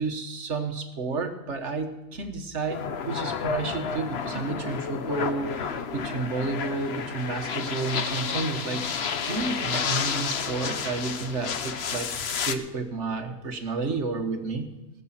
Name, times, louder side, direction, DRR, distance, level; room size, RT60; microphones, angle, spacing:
voice 1, 0.0-8.9 9.2-14.7, right 3 dB, 55° right, 6 dB, 1.6 m, -31 dB
sound 1, 2.7-12.5, left 6 dB, 55° left, 1.0 m, -31 dB
18.0 x 6.8 x 7.4 m, 1.1 s
omnidirectional pair, 1.5 m